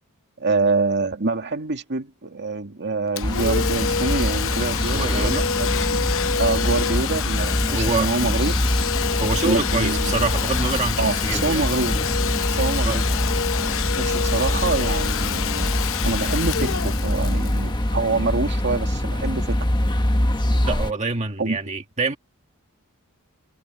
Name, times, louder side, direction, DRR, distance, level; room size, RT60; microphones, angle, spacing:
voice 1, 0.4-6.1 6.4-8.6 9.4-10.2 11.0-13.0 13.7-19.6 21.4-21.6, right 3 dB, 55° right, 2.2 m, -26 dB
Domestic sounds home sounds, 3.2-18.6, left 7 dB, 65° left, 0.8 m, -27 dB
sound 1, 3.2-20.9, left 1 dB, 20° left, 1.3 m, -24 dB
voice 2, 4.9-5.5 7.7-8.1 9.2-11.6 12.8-13.0 20.6-22.2, right 3 dB, 30° right, 1.7 m, -26 dB
head